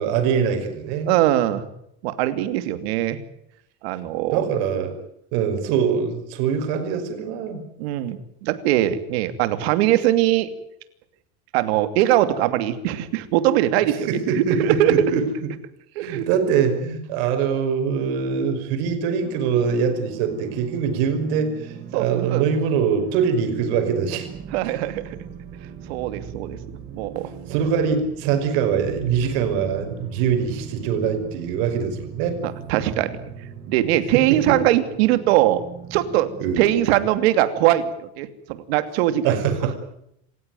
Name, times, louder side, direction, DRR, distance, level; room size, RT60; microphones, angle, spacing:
voice 1, 0.0-1.1 4.3-5.0 5.3-7.6 14.1-15.2 16.0-24.3 27.5-32.4 34.3-34.4 36.4-36.7 39.2-39.8, right 6 dB, 60° right, 6 dB, 5.8 m, -23 dB
voice 2, 1.1-1.6 2.0-3.2 3.8-4.4 7.8-10.5 11.5-14.1 14.3-14.9 16.0-16.3 21.9-22.4 24.5-25.0 25.9-26.6 26.9-27.3 32.4-33.1 33.7-35.6 35.9-36.3 36.6-39.4, right 13 dB, 85° right, 11 dB, 2.8 m, -21 dB
sound 1, 19.2-37.1, right 7 dB, 35° right, 4.1 m, -39 dB
27.5 x 16.0 x 9.4 m, 0.76 s
cardioid pair, 180°, 31 cm